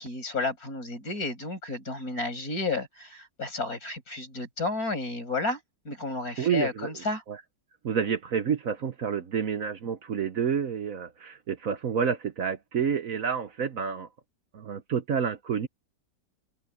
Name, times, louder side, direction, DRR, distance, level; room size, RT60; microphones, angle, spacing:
voice 1, 0.0-5.6 5.8-7.2, left 3 dB, 55° left, 6.8 m, -32 dB
voice 2, 6.4-6.9 7.3-7.4 7.8-14.1 14.5-15.7, right 7 dB, 55° right, 1.3 m, -29 dB
omnidirectional pair, 1.9 m